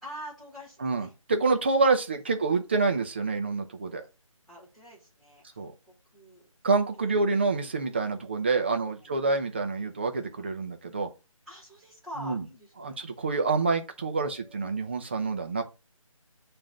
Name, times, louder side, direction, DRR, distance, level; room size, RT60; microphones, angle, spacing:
voice 1, 0.0-1.1 2.3-2.6 4.5-6.5 6.9-7.3 8.0-8.2 9.0-9.1 11.5-13.1 14.0-14.8, equal, ahead, 1.5 m, -46 dB
voice 2, 0.8-4.0 5.6-5.7 6.6-11.1 12.2-12.4 12.8-15.6, right 4 dB, 20° right, 0.5 m, -27 dB
7.0 x 2.6 x 5.7 m
figure-of-eight pair, 160°, 18 cm